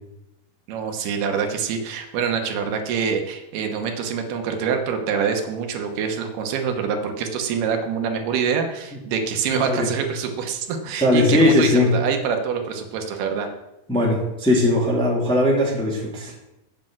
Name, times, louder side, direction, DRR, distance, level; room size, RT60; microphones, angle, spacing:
voice 1, 0.7-13.5, right 6 dB, 80° right, 4 dB, 3.0 m, -25 dB
voice 2, 9.5-9.9 11.0-11.9 13.9-16.3, left 1 dB, ahead, -3 dB, 1.6 m, -19 dB
8.3 x 7.8 x 7.5 m, 0.93 s
omnidirectional pair, 4.6 m